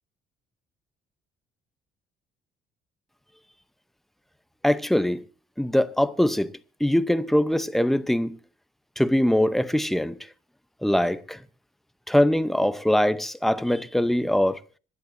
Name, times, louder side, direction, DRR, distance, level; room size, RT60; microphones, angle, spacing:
voice 1, 4.6-5.2 5.6-6.5 6.8-8.4 9.0-10.2 10.8-11.4 12.1-14.6, left 1 dB, ahead, 0.7 m, -22 dB
26.0 x 11.0 x 2.7 m
cardioid pair, 110°, 17 cm